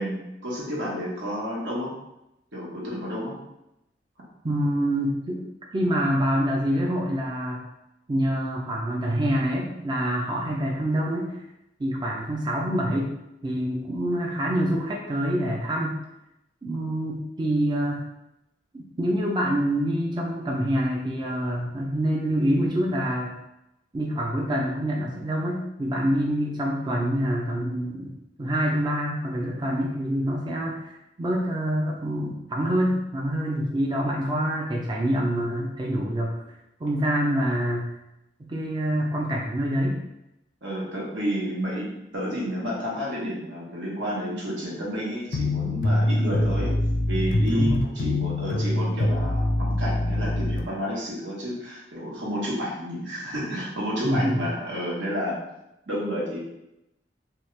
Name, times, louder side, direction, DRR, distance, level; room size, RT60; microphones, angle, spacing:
voice 1, 0.0-1.9 2.5-3.4 40.6-46.8 47.1-55.4 55.9-56.4, equal, 85° right, -5 dB, 1.1 m, -30 dB
voice 2, 4.4-5.5 5.7-7.7 8.1-11.4 11.8-13.1 13.4-16.0 16.6-18.0 18.7-23.3 23.9-28.1 28.4-36.4 36.8-37.9 38.4-40.0 47.5-47.8 54.0-54.4, equal, 25° right, -2 dB, 0.4 m, -26 dB
sound 1, 45.3-50.6, left 1 dB, 50° left, 0.4 m, -24 dB
2.9 x 2.3 x 3.1 m, 0.88 s
head